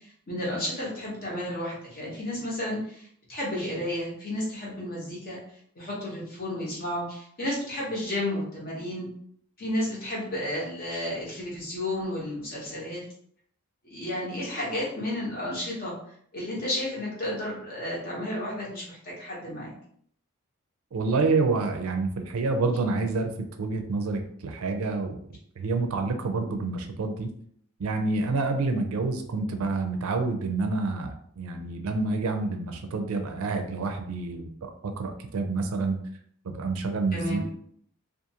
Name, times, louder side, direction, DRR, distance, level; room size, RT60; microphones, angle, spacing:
voice 1, 0.0-5.4 5.8-9.1 9.6-13.0 13.8-15.9 16.3-19.7 37.1-37.5, left 1 dB, 40° left, -4 dB, 1.0 m, -32 dB
voice 2, 20.9-23.3 23.6-25.2 25.6-27.3 27.8-34.7 35.0-36.0 36.4-37.5, right 3 dB, 70° right, 5 dB, 0.4 m, -28 dB
2.4 x 2.4 x 2.7 m, 0.63 s
head